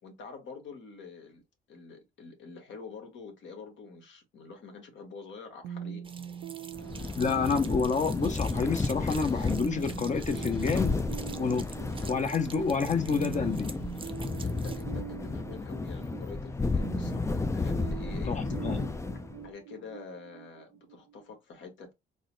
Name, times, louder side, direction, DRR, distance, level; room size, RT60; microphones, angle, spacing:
voice 1, 0.0-1.4 1.7-6.0 11.9-12.2 12.6-12.7 14.4-18.4 19.4-21.9, left 4 dB, 70° left, 1.4 m, -46 dB
sound 1, 5.6-21.2, right 9 dB, 85° right, 0.4 m, -43 dB
sound 2, 6.0-14.8, right 4 dB, 25° right, 0.7 m, -47 dB
sound 3, 6.7-19.5, left 3 dB, 15° left, 0.4 m, -33 dB
voice 2, 7.2-10.9 11.4-11.6 12.1-13.7 18.3-18.8, left 5 dB, 40° left, 0.7 m, -28 dB
4.0 x 2.0 x 3.9 m
cardioid pair, 90°, 20 cm